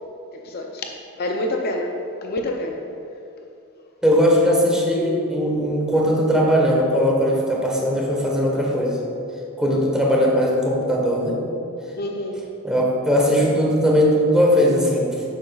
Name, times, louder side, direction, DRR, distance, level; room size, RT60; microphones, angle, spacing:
voice 1, 0.3-0.9 1.2-2.8 11.9-12.4, left 1 dB, 50° left, 2 dB, 0.6 m, -27 dB
voice 2, 4.0-9.0 9.6-11.4 12.6-15.1, equal, 5° right, -2 dB, 1.2 m, -19 dB
10.5 x 7.7 x 2.4 m, 2.7 s
head